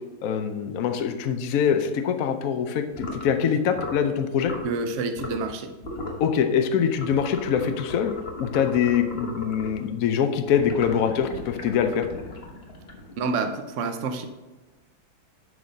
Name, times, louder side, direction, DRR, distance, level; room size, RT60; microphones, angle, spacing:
voice 1, 0.2-4.5 6.2-8.1 8.4-12.1, left 7 dB, 65° left, 7 dB, 0.8 m, -24 dB
sound 1, 2.9-3.3 3.7-4.0 4.4-4.7 5.1-5.5 5.8-6.2 6.9-9.8 10.5-13.3, left 2 dB, 35° left, 1.4 m, -37 dB
voice 2, 4.6-5.7 13.2-14.3, right 4 dB, 80° right, 7 dB, 0.6 m, -28 dB
11.0 x 4.1 x 5.2 m, 1.2 s
omnidirectional pair, 2.1 m